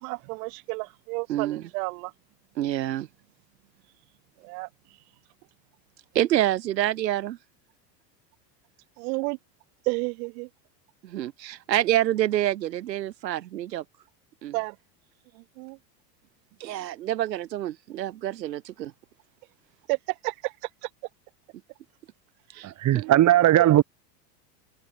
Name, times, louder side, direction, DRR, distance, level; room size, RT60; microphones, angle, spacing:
voice 1, 0.0-2.1 4.4-4.7 9.0-9.4 9.9-10.5 14.5-14.8 15.4-15.8 19.9-20.5 20.8-20.9 22.9-23.8, right 30 dB, 60° right, 3.7 m, -31 dB
voice 2, 1.3-1.7 2.6-3.1 6.2-7.4 11.0-13.8 14.4-14.6 16.6-18.9 22.5-23.0, right 13 dB, 90° right, 5.3 m, -27 dB
voice 3, 22.8-23.8, right 13 dB, 35° right, 3.0 m, -18 dB
supercardioid pair, 120°, 49 cm